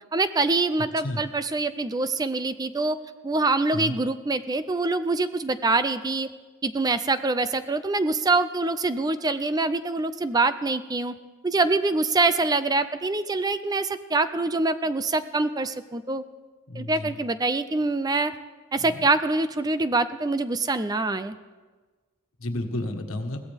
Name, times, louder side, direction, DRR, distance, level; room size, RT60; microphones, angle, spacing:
voice 1, 0.1-3.0 3.2-6.3 6.6-11.1 11.4-16.2 16.8-18.3 18.7-21.3, right 3 dB, 20° right, 12 dB, 0.4 m, -25 dB
voice 2, 16.7-17.1 18.8-19.0 22.4-23.4, left 1 dB, 75° left, 5 dB, 1.5 m, -31 dB
21.5 x 16.0 x 3.5 m, 1.3 s
head